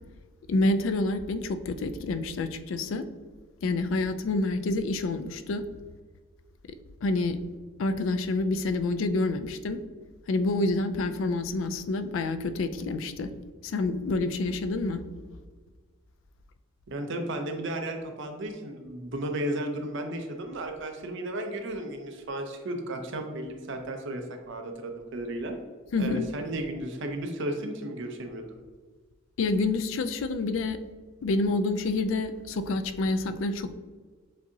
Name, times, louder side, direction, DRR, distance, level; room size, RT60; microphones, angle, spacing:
voice 1, 0.5-3.0 3.6-5.6 7.0-7.4 7.8-9.8 10.3-13.3 13.6-15.2 25.9-26.3 29.4-30.8 31.2-33.7, left 2 dB, 70° left, 11 dB, 0.3 m, -28 dB
voice 2, 16.9-25.6 26.0-28.6, right 1 dB, 65° right, 5 dB, 0.6 m, -34 dB
7.3 x 2.7 x 2.7 m, 1.5 s
head